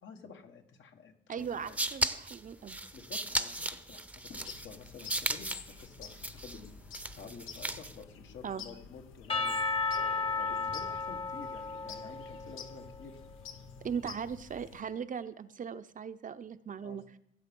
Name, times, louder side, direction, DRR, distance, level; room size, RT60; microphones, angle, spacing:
voice 1, 0.0-1.8 2.9-6.7 7.2-9.6 10.4-13.2 16.8-17.0, left 5 dB, 70° left, 5 dB, 1.7 m, -50 dB
voice 2, 1.3-2.8 8.4-8.6 13.8-17.0, right 7 dB, 40° right, 12 dB, 0.7 m, -38 dB
sound 1, 1.4-8.0, right 1 dB, 5° right, 0.7 m, -36 dB
sound 2, 4.3-14.8, left 7 dB, 85° left, 1.1 m, -50 dB
Percussion / Church bell, 9.3-13.2, left 4 dB, 30° left, 1.0 m, -34 dB
15.5 x 7.3 x 5.4 m, 0.75 s
cardioid pair, 90°, 20 cm